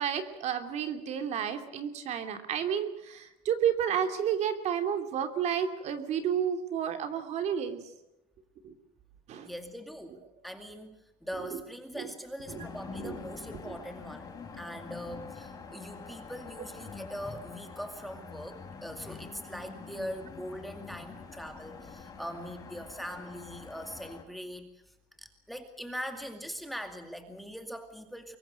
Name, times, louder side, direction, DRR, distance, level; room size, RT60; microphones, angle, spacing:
voice 1, 0.0-7.8 8.6-8.7 9.3-9.5 11.5-11.6 12.0-12.1 12.5-12.6 13.0-13.1, right 8 dB, 45° right, 7 dB, 2.9 m, -31 dB
voice 2, 9.4-11.0 11.2-28.4, equal, ahead, 6 dB, 2.2 m, -42 dB
sound 1, 12.5-24.2, left 5 dB, 20° left, 4.7 m, -46 dB
24.5 x 22.5 x 6.5 m, 0.93 s
cardioid pair, 155°, 16 cm